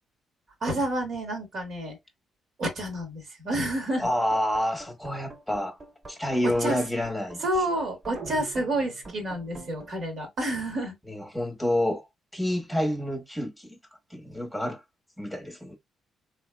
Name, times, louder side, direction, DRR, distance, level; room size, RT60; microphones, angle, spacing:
voice 1, 0.6-2.0 2.6-4.1 6.4-6.8 7.4-11.0, right 1 dB, 60° right, 1.9 m, -29 dB
voice 2, 4.0-5.8 6.1-7.4 11.1-12.0 12.3-13.8 14.1-14.8 15.2-15.8, left 1 dB, ahead, 1.3 m, -28 dB
sound 1, 4.0-9.9, right 2 dB, 35° right, 1.6 m, -46 dB
sound 2, 8.1-9.6, right 4 dB, 80° right, 2.0 m, -43 dB
3.4 x 3.2 x 2.2 m
cardioid pair, 90°, 0 cm